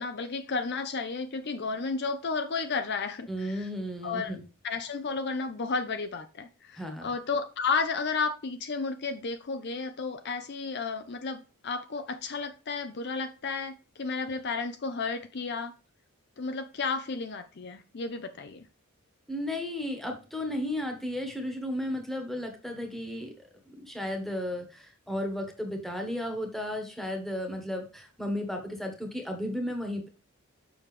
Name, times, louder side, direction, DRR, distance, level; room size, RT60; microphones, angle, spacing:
voice 1, 0.0-3.7 4.0-4.4 4.6-15.7 16.4-18.7, left 4 dB, 50° left, 9 dB, 0.6 m, -32 dB
voice 2, 3.3-4.4 6.8-7.1 19.3-23.3 23.7-30.1, left 1 dB, ahead, 3 dB, 1.3 m, -34 dB
7.0 x 5.8 x 3.2 m, 0.34 s
head